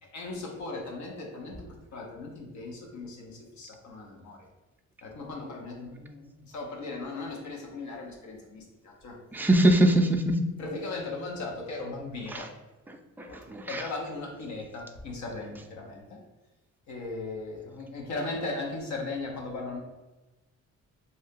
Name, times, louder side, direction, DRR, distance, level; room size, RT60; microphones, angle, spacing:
voice 1, 0.1-4.5 5.0-9.2 9.9-10.0 10.6-12.5 13.2-16.2 16.9-19.8, left 3 dB, 70° left, -1 dB, 0.9 m, -38 dB
voice 2, 9.3-10.4 12.3-12.4 12.9-13.8, right 1 dB, 5° right, 4 dB, 0.3 m, -23 dB
2.8 x 2.6 x 3.5 m, 1.1 s
cardioid pair, 90°, 30 cm